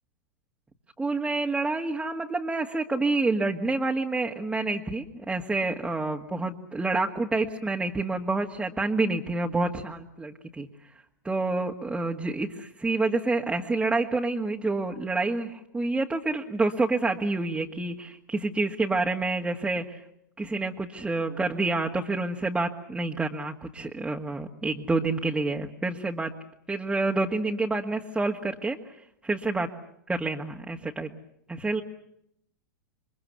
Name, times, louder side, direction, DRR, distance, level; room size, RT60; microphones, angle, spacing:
voice 1, 1.0-10.7 11.2-20.0 20.4-26.3 26.7-29.7 30.1-31.1 31.5-31.8, right 3 dB, 10° right, 1 dB, 1.9 m, -28 dB
28.5 x 24.5 x 7.0 m, 0.76 s
figure-of-eight pair, 100°, 10 cm